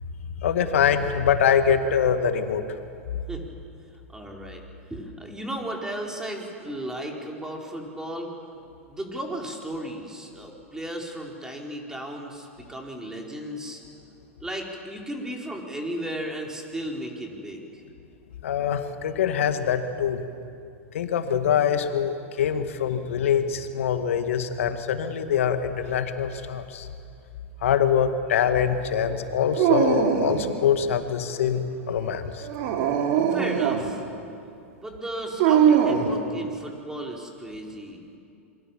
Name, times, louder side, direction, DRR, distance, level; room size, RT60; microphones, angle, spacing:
voice 1, 0.4-2.6 18.4-20.2 20.9-26.9 27.6-32.5, left 8 dB, 70° left, 8 dB, 2.0 m, -24 dB
voice 2, 4.1-4.6 4.9-8.3 8.9-13.8 14.4-17.8 33.3-34.0 34.8-38.0, right 1 dB, 10° right, 0 dB, 4.4 m, -35 dB
Dog, 29.5-30.5 32.4-33.9 35.4-36.2, right 8 dB, 55° right, 3.3 m, -21 dB
27.5 x 23.0 x 7.5 m, 2.6 s
hypercardioid pair, 100°, 7 cm